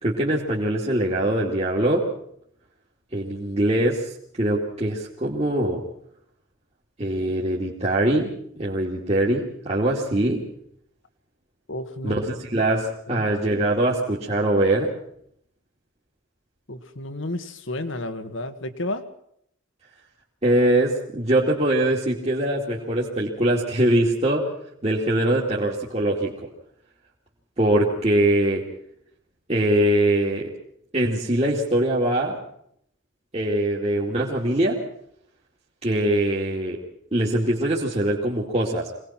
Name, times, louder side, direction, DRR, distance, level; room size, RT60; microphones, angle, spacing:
voice 1, 0.0-2.1 3.1-4.1 4.4-5.8 7.0-8.3 8.6-10.4 12.0-14.9 20.4-24.4 24.8-26.3 27.6-28.6 29.5-30.5 30.9-32.4 33.3-34.8 35.8-36.8 37.1-38.9, right 1 dB, 30° right, -4 dB, 2.7 m, -22 dB
voice 2, 11.7-12.2 13.1-13.3 16.7-19.0, left 1 dB, 65° left, 10 dB, 1.8 m, -31 dB
25.0 x 19.5 x 6.0 m, 0.71 s
head